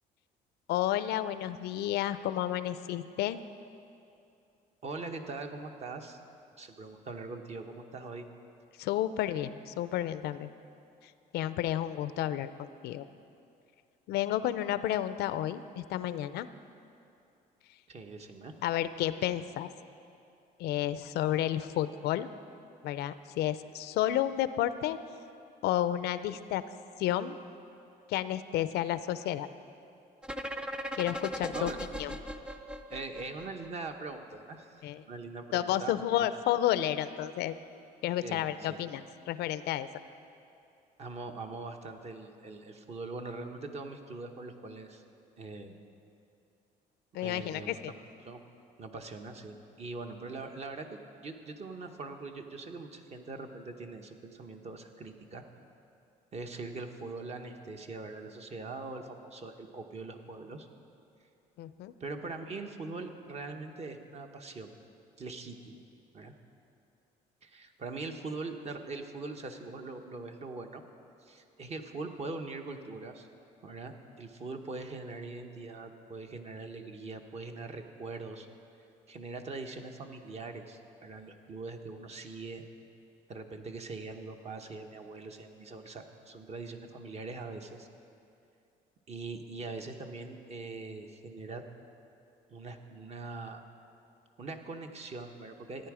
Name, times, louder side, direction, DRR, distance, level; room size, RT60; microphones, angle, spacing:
voice 1, 0.7-3.4 8.8-10.5 11.0-13.1 14.1-16.5 18.6-19.7 20.6-22.3 22.8-25.0 25.6-26.6 27.0-27.4 28.1-29.5 30.9-31.7 32.0-32.2 34.8-35.0 35.5-37.6 38.0-39.9 47.1-47.9 61.6-61.9, left 12 dB, 75° left, 14 dB, 0.5 m, -31 dB
voice 2, 4.8-6.2 6.6-8.3 17.9-18.5 31.5-31.8 32.9-34.7 35.1-36.3 38.2-38.8 41.0-45.0 45.4-45.7 47.2-48.0 48.2-48.4 48.8-55.4 56.3-60.7 62.0-64.7 65.2-65.8 66.1-66.3 67.4-70.8 71.2-73.3 73.6-78.5 79.1-82.6 83.3-87.9 89.1-91.6 92.5-93.6 94.4-95.9, right 3 dB, 40° right, 5 dB, 1.0 m, -42 dB
sound 1, 30.2-34.1, equal, 5° right, 0.5 m, -38 dB
14.5 x 9.6 x 4.9 m, 2.6 s
cardioid pair, 110°, 17 cm